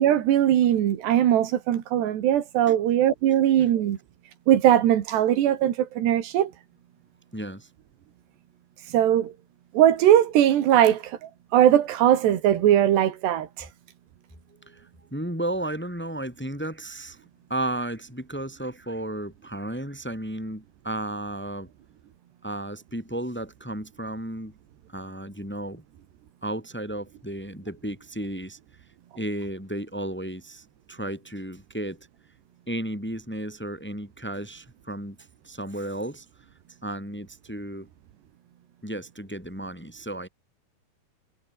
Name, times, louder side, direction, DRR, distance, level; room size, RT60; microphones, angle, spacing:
voice 1, 0.0-4.0 4.5-6.5 8.9-9.3 9.7-11.0 11.5-13.5, right 11 dB, 85° right, 4.2 m, -20 dB
voice 2, 7.3-7.7 14.6-17.2 17.5-21.7 22.4-24.5 24.9-25.8 26.4-28.6 29.2-32.0 32.7-35.2 35.4-36.2 36.8-37.9 38.8-40.3, right 1 dB, ahead, 6.5 m, -33 dB
omnidirectional pair, 4.8 m